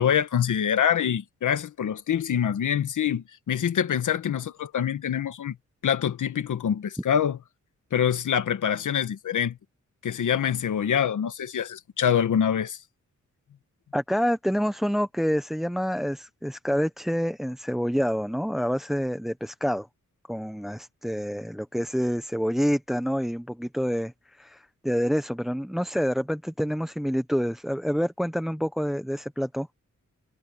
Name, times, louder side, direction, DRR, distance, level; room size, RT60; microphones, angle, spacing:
voice 1, 0.0-5.5 5.8-7.4 7.9-9.6 10.0-12.8, left 8 dB, 85° left, 1.4 m, -25 dB
voice 2, 13.9-19.9 20.3-29.7, equal, ahead, 0.7 m, -27 dB
wide cardioid pair, 130°, 30 cm